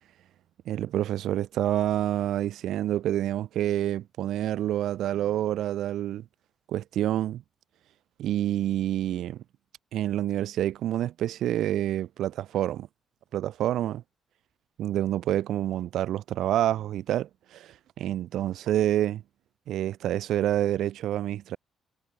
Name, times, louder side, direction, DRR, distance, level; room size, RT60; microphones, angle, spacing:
voice 1, 0.7-6.2 6.7-7.4 8.2-9.4 9.9-12.9 13.3-14.0 14.8-19.2 19.7-21.6, right 12 dB, 80° right, 6.5 m, -28 dB
cardioid pair, 90°, 0 cm